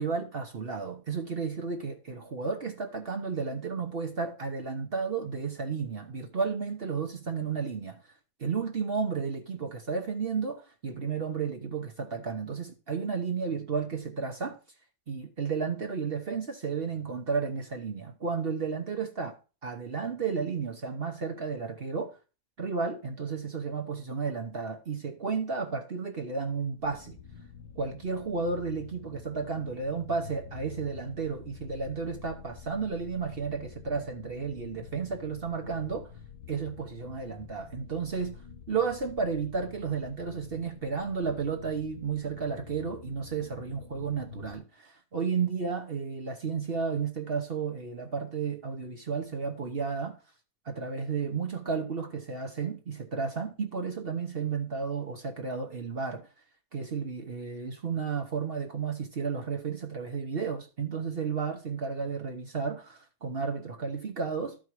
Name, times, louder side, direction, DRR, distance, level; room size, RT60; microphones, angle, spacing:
voice 1, 0.0-8.0 8.4-14.6 15.1-22.2 22.6-27.2 27.8-36.1 36.5-38.4 38.7-50.2 50.6-56.3 56.7-64.6, right 5 dB, 45° right, 1.0 m, -33 dB
sound 1, 26.8-44.6, left 5 dB, 80° left, 1.7 m, -48 dB
12.5 x 5.0 x 4.6 m
omnidirectional pair, 1.7 m